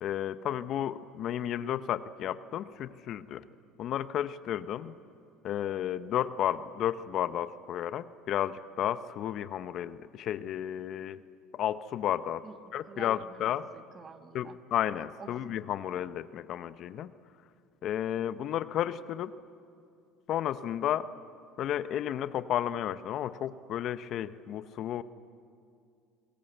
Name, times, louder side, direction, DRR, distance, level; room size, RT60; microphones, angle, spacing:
voice 1, 0.0-3.4 3.8-4.9 5.4-11.2 11.5-12.4 12.7-13.7 14.3-17.1 17.8-19.3 20.3-21.1 21.6-25.0, left 11 dB, 55° left, 13 dB, 0.9 m, -32 dB
voice 2, 12.9-14.6 15.2-15.3, right 5 dB, 35° right, 8 dB, 1.7 m, -48 dB
27.5 x 22.0 x 8.1 m, 2.4 s
supercardioid pair, 85°, 0 cm